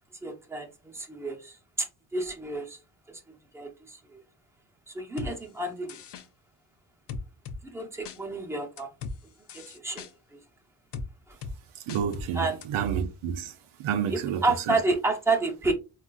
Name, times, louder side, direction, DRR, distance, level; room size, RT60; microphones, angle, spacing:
voice 1, 0.2-1.9 2.1-2.8 3.5-4.2 4.9-6.0 7.6-8.9 9.5-10.4 11.3-11.4 12.3-12.6 14.1-15.7, right 3 dB, 5° right, 0.7 m, -30 dB
sound 1, 5.2-5.3 5.9-6.3 7.1-7.6 8.1-8.2 8.8-9.2 9.5-10.1 10.9-11.1 11.4-11.6 11.9-12.3 12.6-12.7, left 4 dB, 55° left, 0.6 m, -37 dB
voice 2, 11.8-13.5 13.8-14.8, right 8 dB, 85° right, 0.6 m, -30 dB
3.7 x 2.4 x 2.2 m
cardioid pair, 75°, 49 cm